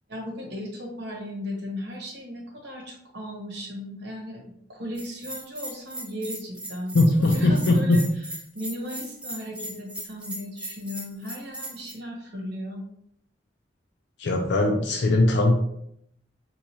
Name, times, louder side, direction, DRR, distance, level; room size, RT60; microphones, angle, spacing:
voice 1, 0.1-8.0 8.5-12.8, left 1 dB, 60° right, 0 dB, 0.9 m, -36 dB
Bell, 4.9-11.9, right 1 dB, 5° right, 0.5 m, -38 dB
voice 2, 6.9-8.0 14.2-15.6, left 2 dB, 65° left, 2 dB, 0.4 m, -20 dB
4.3 x 2.3 x 2.7 m, 0.73 s
head